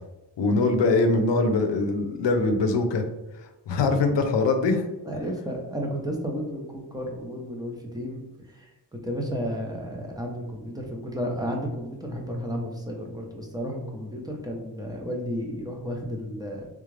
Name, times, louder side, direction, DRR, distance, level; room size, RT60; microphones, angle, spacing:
voice 1, 0.4-3.0 3.7-4.9, left 3 dB, 80° left, 6 dB, 0.6 m, -22 dB
voice 2, 5.0-8.2 8.5-16.7, equal, 10° right, 0 dB, 0.8 m, -32 dB
3.6 x 2.4 x 3.2 m, 1.0 s
cardioid pair, 65°, 42 cm